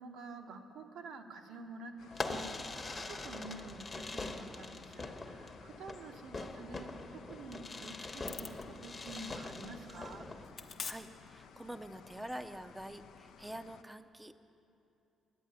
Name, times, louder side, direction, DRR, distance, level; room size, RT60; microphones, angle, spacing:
voice 1, 0.0-10.3, right 3 dB, 85° right, 3 dB, 1.0 m, -49 dB
sound 1, 2.0-13.8, left 7 dB, 80° left, 0.4 m, -57 dB
Fireworks, 2.1-10.5, left 3 dB, 30° left, 0.9 m, -43 dB
sound 2, 8.2-13.8, left 5 dB, 50° left, 0.7 m, -51 dB
voice 2, 10.6-14.4, right 1 dB, 10° right, 8 dB, 0.5 m, -46 dB
11.0 x 8.3 x 9.6 m, 2.8 s
cardioid pair, 90°, 0 cm